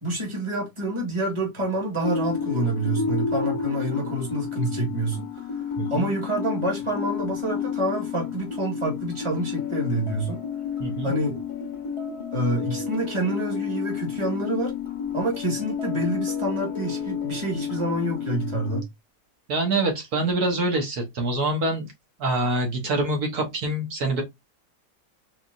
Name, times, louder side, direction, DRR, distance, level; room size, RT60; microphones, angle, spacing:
voice 1, 0.0-5.3 5.6-5.7 5.9-10.4 11.0-11.4 12.3-14.7 15.1-18.8, right 1 dB, 15° right, 2.0 m, -27 dB
sound 1, 2.0-18.8, left 6 dB, 40° left, 0.4 m, -31 dB
voice 2, 5.8-6.1 10.8-11.1 19.5-21.9 22.2-24.2, right 2 dB, 65° right, 1.7 m, -25 dB
4.2 x 4.0 x 2.5 m
omnidirectional pair, 1.8 m